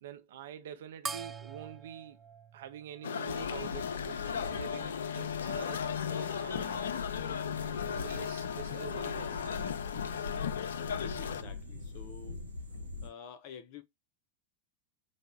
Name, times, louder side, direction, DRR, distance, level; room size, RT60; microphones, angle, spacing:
voice 1, 0.0-2.2 2.5-7.4 7.9-9.7, right 10 dB, 60° right, 0.6 m, -47 dB
sound 1, 1.0-3.8, right 5 dB, 15° right, 0.3 m, -44 dB
sound 2, 3.0-11.4, left 8 dB, 65° left, 0.4 m, -36 dB
sound 3, 3.2-13.1, left 3 dB, 90° right, 1.1 m, -43 dB
voice 2, 10.9-12.4 13.0-13.8, left 7 dB, 45° left, 0.8 m, -49 dB
5.4 x 2.1 x 3.6 m
figure-of-eight pair, 90°, 0 cm